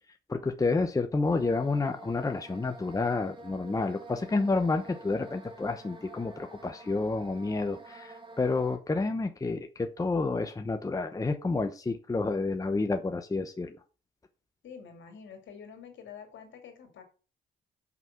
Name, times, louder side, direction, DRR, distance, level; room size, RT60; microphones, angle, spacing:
voice 1, 0.3-13.8, left 3 dB, 15° left, 0.8 m, -29 dB
sound 1, 1.2-8.8, right 2 dB, 25° right, 1.8 m, -49 dB
voice 2, 14.6-17.0, left 7 dB, 70° left, 2.7 m, -47 dB
6.0 x 5.5 x 6.0 m
cardioid pair, 90°, 20 cm